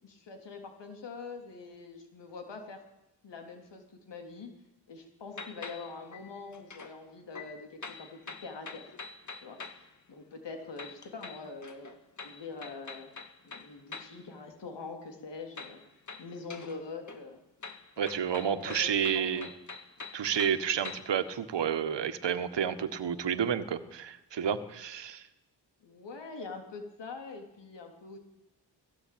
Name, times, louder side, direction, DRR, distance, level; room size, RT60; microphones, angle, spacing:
voice 1, 0.0-2.8 3.2-4.5 4.9-9.0 9.4-11.9 12.2-13.1 13.4-17.4 18.4-19.5 25.8-28.2, left 4 dB, 90° left, 4 dB, 3.6 m, -44 dB
sound 1, 5.3-7.0 7.3-9.9 10.8-14.2 15.6-16.8 17.1-21.2, left 4 dB, 45° left, 2.0 m, -45 dB
voice 2, 18.0-19.5 20.1-25.3, right 8 dB, 90° right, 11 dB, 1.6 m, -30 dB
19.0 x 16.5 x 8.7 m, 0.88 s
wide cardioid pair, 105°, 41 cm